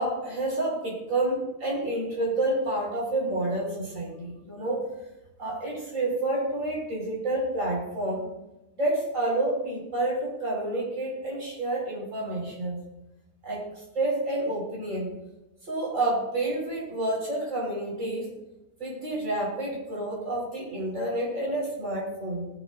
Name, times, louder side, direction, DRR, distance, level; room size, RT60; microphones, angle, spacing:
voice 1, 0.0-4.9 5.4-8.2 8.8-12.8 13.4-15.1 15.6-18.3 18.8-22.5, right 2 dB, 40° right, -3 dB, 6.0 m, -29 dB
20.0 x 11.0 x 2.8 m, 0.95 s
omnidirectional pair, 2.1 m